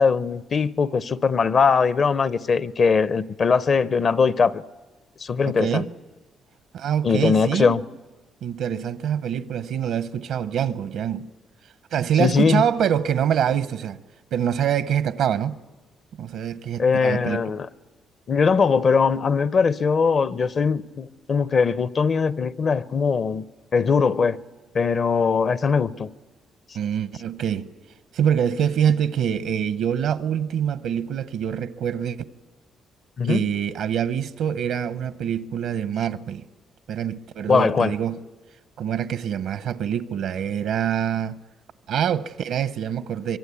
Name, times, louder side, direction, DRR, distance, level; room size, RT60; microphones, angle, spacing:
voice 1, 0.0-4.6 5.2-5.8 7.0-7.8 12.2-12.6 16.8-17.7 18.3-23.4 23.7-24.4 24.7-26.1 33.2-33.5 37.5-37.9, left 5 dB, 45° left, 0.7 m, -21 dB
voice 2, 5.4-5.9 6.7-7.8 8.4-11.3 11.9-14.0 14.3-15.6 16.2-17.4 26.7-27.7 28.1-32.2 33.2-36.4 36.9-38.2 38.8-41.4 41.9-43.4, right 9 dB, 80° right, 0.8 m, -25 dB
24.5 x 23.0 x 8.4 m
cardioid pair, 90°, 0 cm